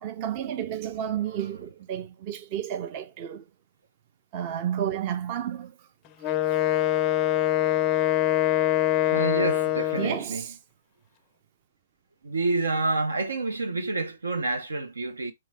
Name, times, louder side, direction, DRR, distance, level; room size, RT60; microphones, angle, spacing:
voice 1, 0.0-3.5 4.3-5.7 10.0-10.5, right 10 dB, 35° right, 0.5 m, -31 dB
voice 2, 1.3-1.6 9.1-10.5 12.2-15.3, right 3 dB, 85° right, 0.9 m, -28 dB
Wind instrument woodwind instrument, 6.2-10.2, left 14 dB, 25° left, 0.4 m, -24 dB
3.8 x 3.1 x 4.0 m
hypercardioid pair, 135°, 0 cm